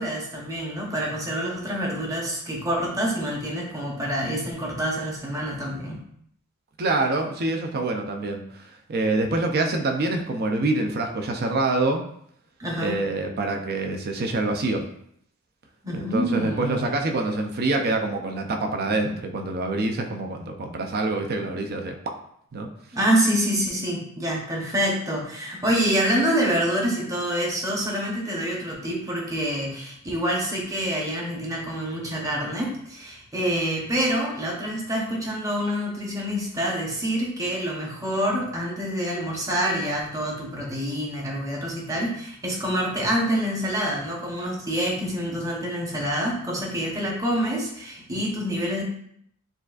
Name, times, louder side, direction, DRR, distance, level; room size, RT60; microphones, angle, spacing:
voice 1, 0.0-6.0 12.6-13.0 15.8-16.9 22.9-48.8, equal, 15° right, -2 dB, 0.8 m, -26 dB
voice 2, 6.8-12.0 12.7-14.8 15.9-21.9 22.5-22.7, right 2 dB, 45° right, 3 dB, 0.5 m, -26 dB
6.7 x 2.5 x 2.4 m, 0.69 s
head